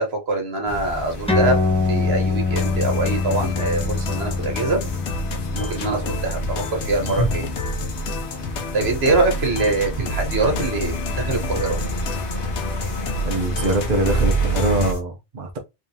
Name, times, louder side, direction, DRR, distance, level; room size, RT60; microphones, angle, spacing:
voice 1, 0.0-4.8 5.5-7.5 8.7-11.8, right 3 dB, 65° right, 1.5 m, -24 dB
sound 1, 0.7-14.9, right 1 dB, 55° left, 1.4 m, -29 dB
sound 2, 1.3-8.2, left 4 dB, 5° left, 1.1 m, -25 dB
sound 3, 2.5-15.0, left 2 dB, 85° left, 1.1 m, -30 dB
voice 2, 13.2-15.6, right 2 dB, 45° right, 0.9 m, -23 dB
3.6 x 3.6 x 2.8 m
omnidirectional pair, 1.1 m